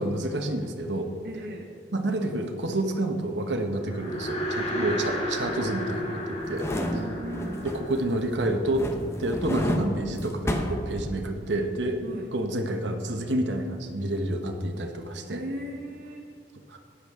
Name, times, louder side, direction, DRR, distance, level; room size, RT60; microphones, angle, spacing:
voice 1, 0.0-1.1 1.9-6.7 7.6-8.9 9.2-12.0 12.3-15.4 16.7-16.8, right 1 dB, 75° right, 4 dB, 1.0 m, -29 dB
voice 2, 1.2-1.7 4.7-5.1 6.6-7.6 12.0-12.3 15.3-16.3, right 1 dB, 55° right, 0 dB, 0.9 m, -37 dB
sound 1, 3.8-9.2, equal, 35° left, 1.7 m, -33 dB
sound 2, 6.4-8.1 8.4-11.5 11.9-12.0, equal, 15° left, 0.8 m, -31 dB
14.0 x 9.8 x 3.6 m, 2.2 s
head